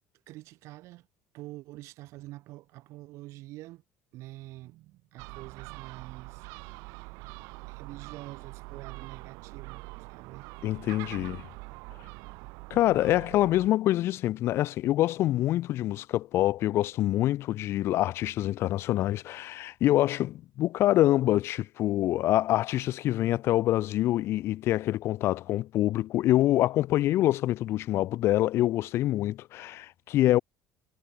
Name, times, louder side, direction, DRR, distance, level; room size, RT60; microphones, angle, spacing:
voice 1, 0.3-1.1 1.3-3.8 4.1-6.5 6.7-7.1 7.7-9.8 10.1-10.5 10.9-11.3, right 18 dB, 70° right, 2.7 m, -46 dB
Gull seagull, 5.2-13.7, right 28 dB, 85° right, 0.4 m, -44 dB
voice 2, 10.6-11.4 12.7-30.4, left 14 dB, 55° left, 0.4 m, -26 dB
cardioid pair, 140°, 5 cm